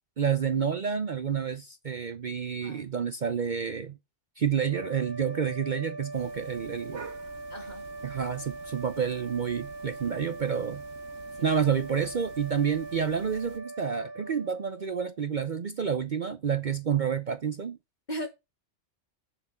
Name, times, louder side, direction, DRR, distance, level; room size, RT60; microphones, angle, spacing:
voice 1, 0.2-4.0 4.4-7.1 8.0-10.8 11.4-17.8, right 7 dB, 45° right, 0.8 m, -29 dB
sound 1, 4.6-15.3, right 2 dB, 20° right, 1.6 m, -42 dB
sound 2, 6.1-13.6, right 6 dB, 75° right, 1.5 m, -49 dB
voice 2, 7.5-7.9 11.4-11.5 18.1-18.3, equal, 40° left, 2.9 m, -37 dB
7.1 x 6.9 x 6.8 m
omnidirectional pair, 1.2 m